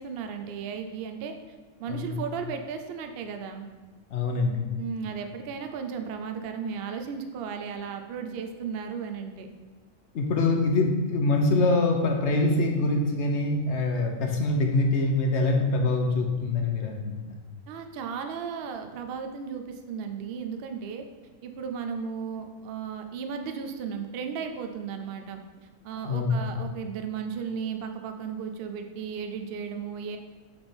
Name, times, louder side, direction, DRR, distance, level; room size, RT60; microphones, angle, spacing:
voice 1, 0.0-1.3 1.8-3.7 4.8-9.5 17.7-21.0 21.4-25.4 25.8-30.2, right 6 dB, 60° right, 6 dB, 0.7 m, -35 dB
voice 2, 4.1-4.6 10.1-17.0 26.0-26.3, left 2 dB, 65° left, 2 dB, 1.1 m, -24 dB
8.5 x 3.4 x 4.3 m, 1.3 s
omnidirectional pair, 1.3 m